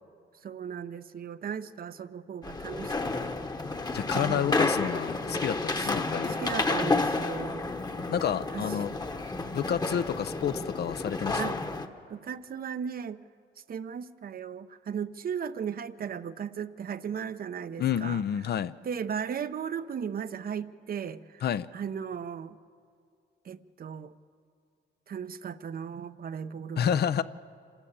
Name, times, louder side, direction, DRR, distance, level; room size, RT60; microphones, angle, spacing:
voice 1, 0.4-3.1 4.1-4.5 5.8-5.9 6.4-7.7 8.5-8.6 11.4-11.6 12.1-13.2 13.7-18.2 18.8-21.4 21.7-22.6 23.4-24.1 25.1-27.0, right 7 dB, 50° right, 12 dB, 0.7 m, -36 dB
sound 1, 2.4-11.9, left 3 dB, 20° left, 1.1 m, -31 dB
voice 2, 3.9-6.4 8.1-8.9 9.5-11.5 17.8-18.7 21.4-21.7 26.8-27.2, left 9 dB, 55° left, 14 dB, 0.6 m, -29 dB
26.0 x 13.0 x 8.8 m, 2.3 s
cardioid pair, 90°, 20 cm